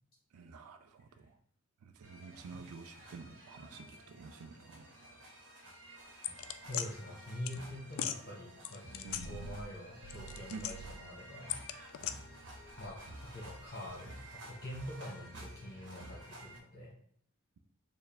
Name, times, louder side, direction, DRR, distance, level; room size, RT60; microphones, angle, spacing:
voice 1, 0.3-1.4 1.8-4.9 9.0-9.6 10.5-10.6 12.0-12.1, right 4 dB, 80° right, 8 dB, 0.4 m, -50 dB
sound 1, 2.0-16.6, right 1 dB, 55° right, 1.0 m, -52 dB
sound 2, 6.2-6.9 7.5-7.6 7.9-8.2 8.6-9.7 10.0-11.0 11.5-12.1, left 9 dB, 70° left, 0.3 m, -39 dB
voice 2, 6.7-11.6 12.8-16.9, left 1 dB, 45° left, -5 dB, 0.9 m, -45 dB
4.5 x 2.1 x 3.4 m, 0.64 s
head